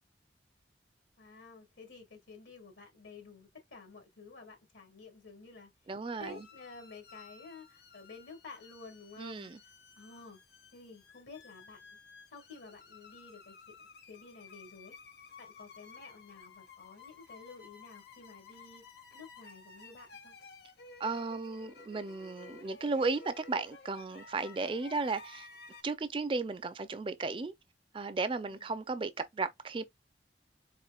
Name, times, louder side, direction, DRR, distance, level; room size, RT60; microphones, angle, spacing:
voice 1, 1.2-5.7 6.1-10.4 10.7-12.0 12.3-13.8 14.1-15.0 15.4-18.8 19.1-20.4 28.5-28.7, left 3 dB, 85° left, 1.8 m, -52 dB
voice 2, 5.9-6.5 9.2-9.6 21.0-25.5 25.8-27.5 27.9-29.8, right 3 dB, 30° right, 0.4 m, -35 dB
sound 1, 6.2-25.8, left 4 dB, 65° left, 0.9 m, -54 dB
4.3 x 3.4 x 2.3 m
head